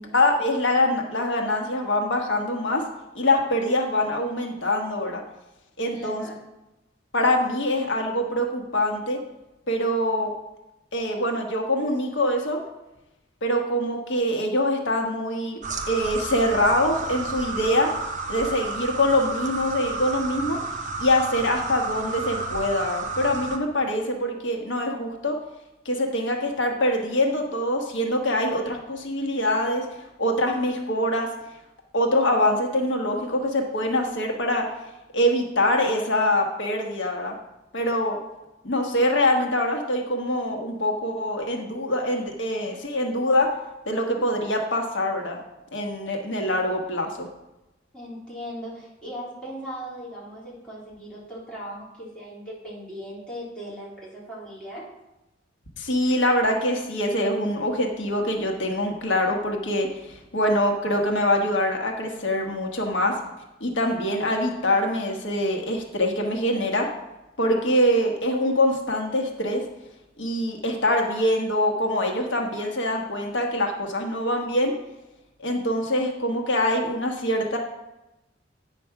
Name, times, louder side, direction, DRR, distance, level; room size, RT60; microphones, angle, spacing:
voice 1, 0.1-2.8 3.1-5.2 5.8-6.2 7.1-9.2 9.7-10.3 10.9-12.6 13.4-15.6 15.9-17.9 18.3-20.6 21.0-25.4 25.8-29.8 30.2-31.3 31.9-34.7 35.1-37.3 37.7-38.2 38.6-43.5 43.9-45.4 45.7-47.3 55.8-63.1 63.6-66.9 67.4-69.6 70.2-74.7 75.4-77.6, left 1 dB, 85° left, 2 dB, 1.2 m, -24 dB
voice 2, 5.9-6.3 47.9-54.9 56.0-56.1, equal, 5° left, -8 dB, 3.2 m, -38 dB
sound 1, 15.6-23.6, right 3 dB, 45° right, 0.8 m, -31 dB
9.1 x 5.1 x 5.8 m, 0.97 s
head